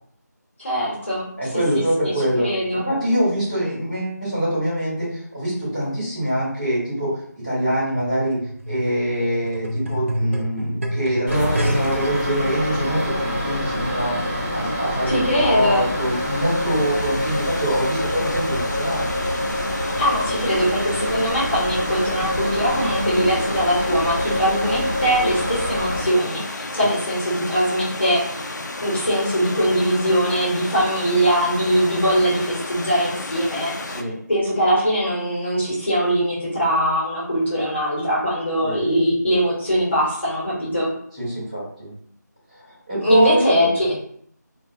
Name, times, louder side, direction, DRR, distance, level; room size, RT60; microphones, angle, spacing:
voice 1, 0.6-1.2 2.0-2.1 2.4-2.8 15.1-15.9 20.0-28.5 28.8-33.7 34.3-40.9 43.0-43.9, equal, 40° left, -7 dB, 1.1 m, -21 dB
voice 2, 1.4-7.2 7.4-19.0 26.7-26.9 33.8-34.1 38.6-38.8 41.1-41.9 42.5-43.5, equal, 20° right, -13 dB, 1.3 m, -24 dB
sound 1, 7.7-12.1 12.9-13.0, equal, 45° right, 0.4 m, -27 dB
sound 2, 11.3-26.0, left 1 dB, 15° left, 0.6 m, -26 dB
Stream / Liquid, 15.1-34.0, left 2 dB, 70° left, 0.4 m, -33 dB
2.3 x 2.3 x 2.6 m, 0.64 s
figure-of-eight pair, 175°, 10 cm